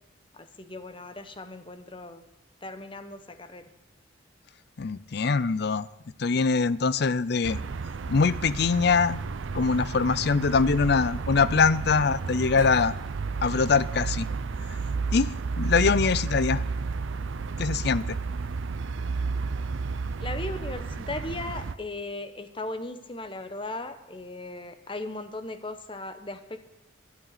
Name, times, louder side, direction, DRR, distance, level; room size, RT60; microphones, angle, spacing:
voice 1, 0.3-2.2 2.6-3.7 15.9-16.2 20.2-26.6, left 2 dB, 25° left, 9 dB, 0.9 m, -37 dB
voice 2, 4.8-5.9 6.2-7.6 8.1-9.2 9.5-12.9 13.4-14.3 15.1-16.6 17.6-18.2, left 4 dB, 50° left, 18 dB, 0.5 m, -23 dB
sound 1, 7.4-21.7, right 4 dB, 70° right, 0.5 m, -32 dB
11.5 x 8.9 x 9.4 m, 0.94 s
head